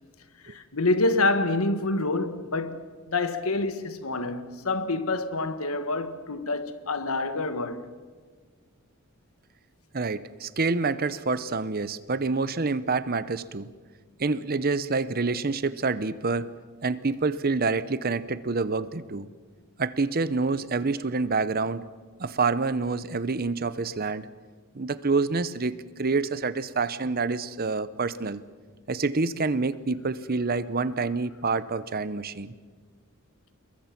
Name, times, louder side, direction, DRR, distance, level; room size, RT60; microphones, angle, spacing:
voice 1, 0.4-7.9, left 2 dB, 75° left, 1.5 m, -27 dB
voice 2, 9.9-13.7 14.2-16.5 16.8-19.3 19.8-21.9 22.2-24.3 24.7-28.4 28.9-32.5, right 4 dB, 45° right, 0.8 m, -27 dB
27.5 x 22.0 x 5.9 m
head